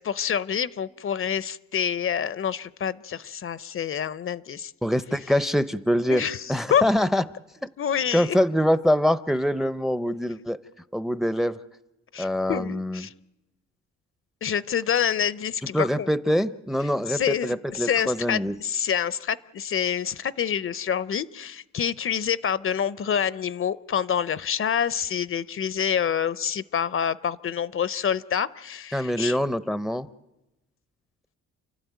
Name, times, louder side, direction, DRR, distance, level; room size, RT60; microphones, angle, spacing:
voice 1, 0.0-4.7 6.1-6.4 6.7-6.8 7.8-8.4 12.1-13.1 14.4-16.1 17.1-29.4, left 8 dB, 45° left, 18 dB, 0.7 m, -27 dB
voice 2, 4.8-7.2 8.1-10.6 10.9-11.6 12.2-13.1 15.7-18.6 28.9-30.1, equal, ahead, 16 dB, 0.7 m, -24 dB
29.0 x 12.5 x 9.3 m, 0.99 s
cardioid pair, 90°, 30 cm